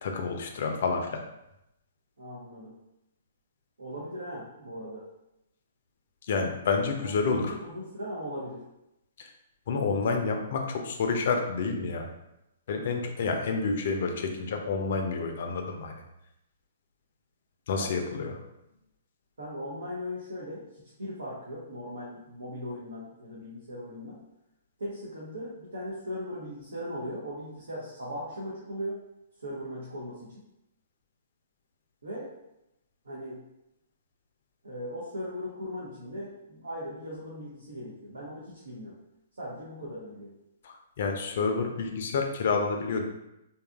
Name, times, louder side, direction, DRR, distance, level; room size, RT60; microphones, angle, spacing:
voice 1, 0.0-1.2 6.3-7.5 9.2-9.3 9.7-12.1 12.7-15.9 17.7-18.3 40.6-43.0, left 4 dB, 60° left, 3 dB, 0.4 m, -29 dB
voice 2, 2.2-2.7 3.8-5.1 7.0-8.6 17.7-17.9 19.4-20.7 21.0-24.2 24.8-29.0 29.4-30.4 32.0-32.3 33.0-33.4 34.6-38.9 39.4-40.3, equal, 85° right, -6 dB, 0.7 m, -38 dB
2.6 x 2.4 x 2.3 m, 0.88 s
hypercardioid pair, 125°, 0 cm